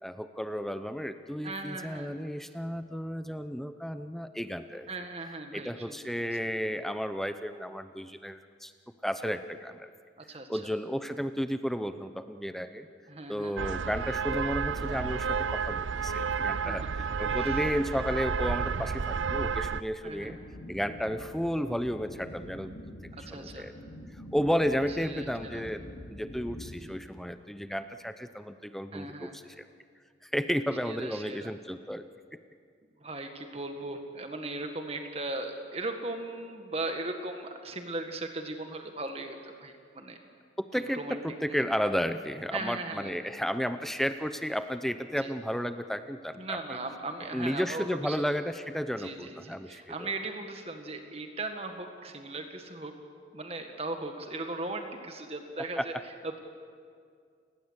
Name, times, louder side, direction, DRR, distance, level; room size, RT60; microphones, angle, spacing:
voice 1, 0.0-4.9 5.5-8.7 9.0-9.9 10.5-12.9 13.3-16.8 17.2-20.4 20.7-22.7 23.2-23.7 24.1-25.8 26.1-29.6 30.2-32.0 40.7-46.8 47.3-50.1 55.8-55.9, equal, ahead, 10 dB, 0.6 m, -33 dB
voice 2, 1.4-2.1 4.9-6.3 10.2-10.6 13.1-13.5 16.6-16.9 17.3-17.7 20.0-20.4 23.1-23.7 25.0-25.6 28.9-29.4 30.9-31.5 33.0-40.2 40.9-41.2 41.5-41.6 42.5-43.1 45.2-45.3 46.4-48.3 49.0-52.9 53.3-55.9 56.2-56.4, right 2 dB, 30° right, 5 dB, 1.8 m, -38 dB
sound 1, 13.6-19.8, right 6 dB, 85° right, 0.6 m, -31 dB
sound 2, 20.1-26.8, equal, 65° left, 7.4 m, -46 dB
29.5 x 18.5 x 8.2 m, 2.2 s
head